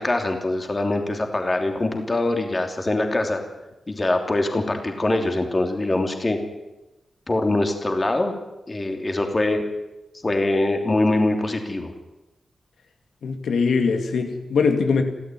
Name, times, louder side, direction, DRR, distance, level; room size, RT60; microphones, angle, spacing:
voice 1, 0.0-3.4 3.9-6.4 7.3-8.3 8.7-9.6 10.2-11.9, left 2 dB, 25° left, 4 dB, 3.1 m, -23 dB
voice 2, 13.2-15.0, left 5 dB, 85° left, 6 dB, 2.5 m, -21 dB
30.0 x 13.0 x 9.3 m, 1.0 s
wide cardioid pair, 140°, 0 cm